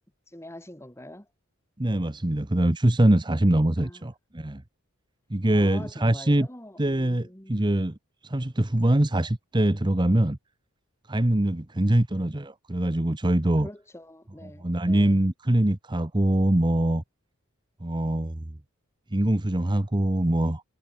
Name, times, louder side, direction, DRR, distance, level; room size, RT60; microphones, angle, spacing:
voice 1, 0.3-1.3 3.8-4.0 5.5-7.7 13.6-15.2, left 1 dB, 10° left, 2.8 m, -44 dB
voice 2, 1.8-4.6 5.3-6.5 6.8-10.4 11.1-13.7 14.4-17.0 17.8-18.5 19.1-20.6, right 1 dB, 20° right, 1.0 m, -23 dB
head